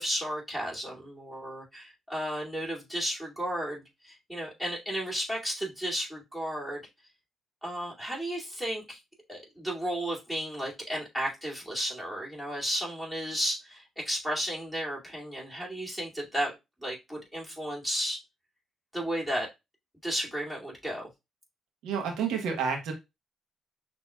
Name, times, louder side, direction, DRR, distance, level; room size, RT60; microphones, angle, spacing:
voice 1, 0.0-6.8 7.6-9.0 9.3-16.5 16.8-18.2 18.9-19.5 20.0-21.1, equal, ahead, 2.4 m, -33 dB
voice 2, 21.8-22.9, right 6 dB, 90° right, 1.1 m, -29 dB
6.1 x 2.9 x 2.3 m
cardioid pair, 90°, 0 cm